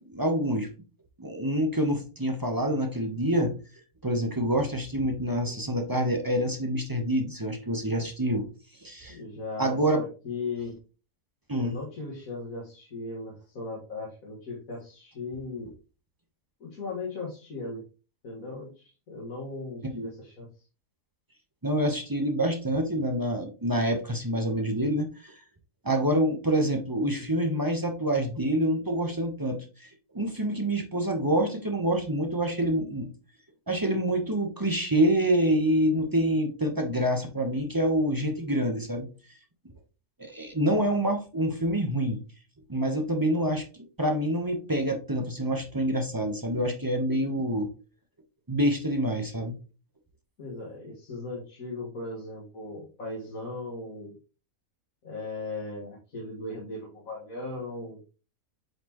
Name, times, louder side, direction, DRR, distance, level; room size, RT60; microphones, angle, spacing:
voice 1, 0.1-0.7 1.2-3.6 4.0-8.5 8.8-9.2 9.6-10.0 11.5-11.8 19.9-20.1 21.6-25.3 25.8-29.9 30.1-33.1 33.7-39.1 40.2-42.2 42.7-43.6 44.0-47.7 48.5-49.6, right 1 dB, 15° right, 3 dB, 0.8 m, -26 dB
voice 2, 9.1-10.8 11.5-15.7 16.6-17.8 18.2-20.5 27.1-27.3 50.4-54.1 55.0-58.0, left 3 dB, 70° left, -4 dB, 2.2 m, -38 dB
7.8 x 4.2 x 3.0 m, 0.34 s
omnidirectional pair, 1.5 m